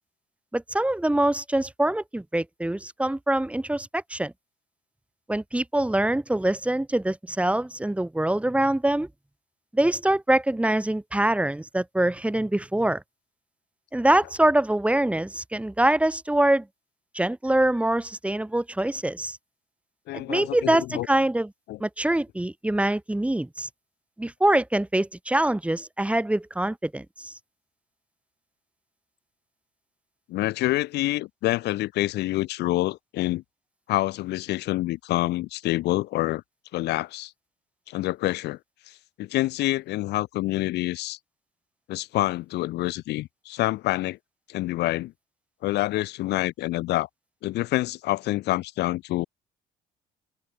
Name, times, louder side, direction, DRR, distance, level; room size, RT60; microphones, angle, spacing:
voice 1, 0.5-4.3 5.3-9.1 9.7-13.0 13.9-16.7 17.1-19.4 20.1-21.5 21.8-23.7 24.2-27.3, right 1 dB, 5° right, 5.4 m, -24 dB
voice 2, 20.1-21.1 21.7-21.8 30.3-33.4 33.9-36.4 36.7-37.3 37.9-38.6 38.9-41.2 41.9-44.2 44.5-45.1 45.6-47.1 47.4-49.3, left 17 dB, 80° left, 4.8 m, -27 dB
cardioid pair, 110°, 17 cm